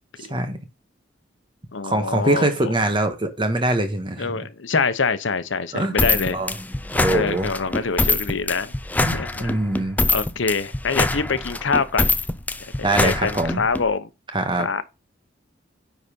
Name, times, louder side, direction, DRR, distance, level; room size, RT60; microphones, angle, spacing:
voice 1, 0.2-0.6 1.8-4.4 5.7-6.0 6.3-6.5 6.9-7.5 9.0-10.0 12.8-13.6 14.3-14.7, right 1 dB, 25° right, 1.5 m, -23 dB
voice 2, 1.7-2.7 4.2-6.4 7.1-8.7 9.0-9.5 10.1-12.1 12.8-14.1 14.6-14.8, left 4 dB, 85° left, 0.9 m, -25 dB
sound 1, 6.0-13.8, left 2 dB, 10° left, 0.4 m, -24 dB
10.0 x 4.1 x 5.2 m
head